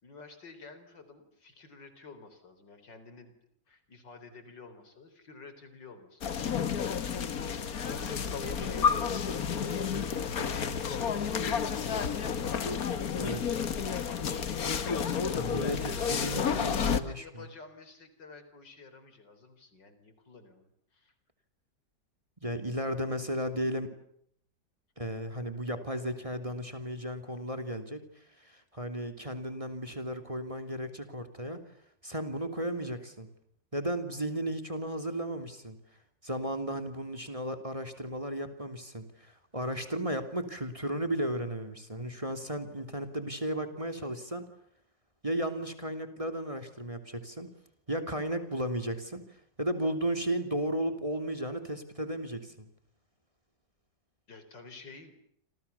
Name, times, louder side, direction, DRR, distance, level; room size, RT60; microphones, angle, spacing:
voice 1, 0.0-3.3 3.7-6.3 7.3-9.2 10.2-11.6 12.1-12.6 13.5-14.9 15.7-21.1 54.3-55.1, left 3 dB, 80° left, 10 dB, 4.9 m, -50 dB
sound 1, 6.2-17.0, left 7 dB, 55° left, 1.8 m, -31 dB
voice 2, 13.1-13.5 15.3-17.4 22.4-23.9 25.0-28.0 28.4-31.6 32.0-33.3 33.7-35.8 36.2-44.5 45.2-47.5 47.9-49.2 49.6-52.7, right 1 dB, 20° right, 9 dB, 3.0 m, -34 dB
28.5 x 27.5 x 7.1 m, 0.69 s
omnidirectional pair, 1.9 m